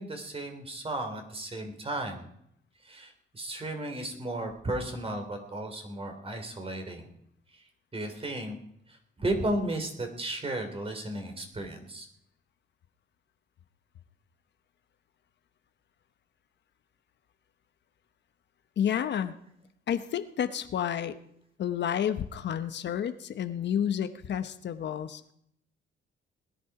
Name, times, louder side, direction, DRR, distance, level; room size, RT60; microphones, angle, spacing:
voice 1, 0.0-2.2 2.8-7.1 7.9-8.6 8.9-12.1, right 1 dB, 30° right, 5 dB, 3.4 m, -34 dB
voice 2, 18.8-19.3 19.9-21.2 21.6-25.3, left 9 dB, 60° left, 10 dB, 1.0 m, -30 dB
20.0 x 11.0 x 4.9 m, 0.73 s
cardioid pair, 90°, 20 cm